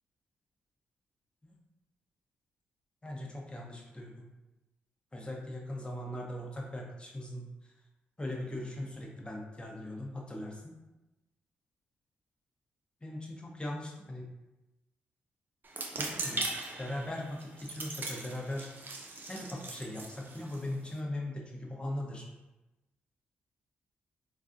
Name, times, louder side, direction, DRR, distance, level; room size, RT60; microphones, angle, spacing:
voice 1, 3.0-4.3 5.1-7.5 8.2-10.6 13.0-14.3 15.9-16.5 16.8-18.7 19.3-22.3, left 1 dB, 20° left, -1 dB, 0.8 m, -39 dB
sound 1, 15.6-21.0, right 2 dB, 45° right, 0.5 m, -40 dB
3.2 x 2.4 x 2.5 m, 1.0 s
hypercardioid pair, 45°, 4 cm